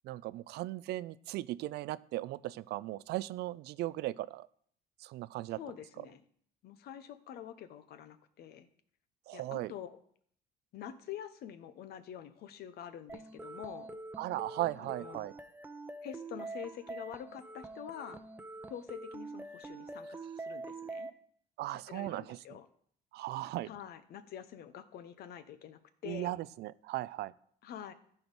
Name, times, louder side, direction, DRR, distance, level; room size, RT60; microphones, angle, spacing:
voice 1, 0.0-4.5 5.0-5.6 9.3-9.7 14.2-15.3 21.6-22.4 23.1-23.7 26.0-27.3, right 16 dB, 75° right, 18 dB, 0.4 m, -37 dB
voice 2, 5.5-6.2 6.6-8.7 9.3-10.0 10.7-13.9 14.8-15.3 16.0-18.2 18.7-21.1 21.9-22.7 23.6-26.3 27.6-27.9, left 9 dB, 70° left, 12 dB, 1.0 m, -46 dB
sound 1, 13.1-21.1, right 2 dB, 10° right, 0.7 m, -45 dB
14.0 x 4.7 x 5.4 m, 0.62 s
cardioid pair, 110°, 17 cm